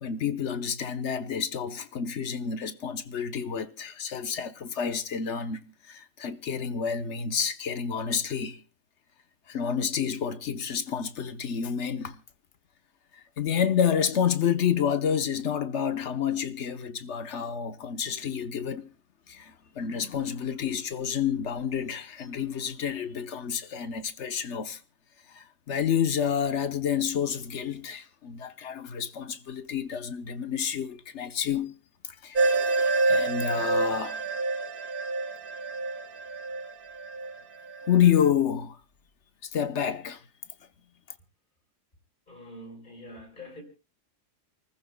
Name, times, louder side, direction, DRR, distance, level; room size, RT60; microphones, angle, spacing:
voice 1, 0.0-5.6 5.9-8.6 9.5-12.2 13.1-18.9 19.3-24.8 25.3-31.7 32.2-34.2 37.9-38.8 39.4-40.2, left 8 dB, 70° left, 1.2 m, -29 dB
sound 1, 32.3-38.1, right 3 dB, 45° right, 1.3 m, -28 dB
voice 2, 42.3-43.6, left 1 dB, 40° left, 4.8 m, -45 dB
29.0 x 14.5 x 2.2 m
omnidirectional pair, 1.3 m